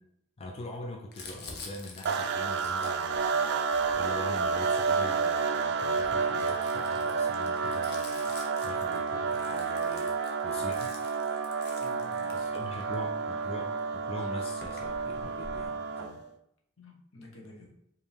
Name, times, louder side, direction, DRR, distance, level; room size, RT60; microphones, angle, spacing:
voice 1, 0.4-8.3 8.6-10.1 10.4-10.9 12.3-16.2, left 1 dB, 30° left, 1 dB, 0.4 m, -42 dB
Crumpling crinkling, 1.1-5.2 5.8-12.9 13.8-13.9 14.1-15.6, left 3 dB, 50° left, 0.8 m, -48 dB
sound 1, 2.1-16.3, right 5 dB, 55° right, 0.4 m, -30 dB
voice 2, 11.8-13.4 16.8-17.8, left 1 dB, 80° left, 0 dB, 1.0 m, -51 dB
5.0 x 2.7 x 3.3 m, 0.74 s
head